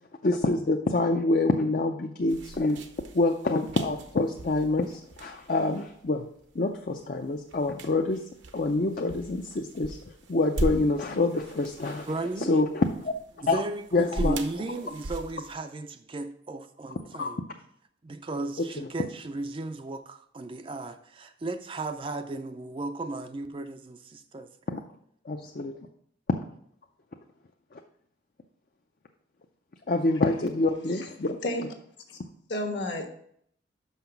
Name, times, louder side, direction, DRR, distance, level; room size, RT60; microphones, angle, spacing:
voice 1, 0.2-2.8 3.1-6.2 6.5-8.2 8.5-10.0 10.3-12.1 12.4-13.1 13.5-13.6 13.9-14.4 17.2-17.3 18.8-18.9 24.7-24.8 25.3-25.7 27.7-27.8 29.9-31.4, left 2 dB, 45° left, 0.5 m, -26 dB
sound 1, 2.3-15.5, right 1 dB, 70° right, 0.8 m, -39 dB
voice 2, 12.1-12.6 13.4-17.4 18.0-24.5, right 2 dB, 25° right, 0.4 m, -35 dB
voice 3, 32.5-33.1, left 1 dB, 65° left, 1.3 m, -31 dB
6.0 x 5.7 x 5.8 m
head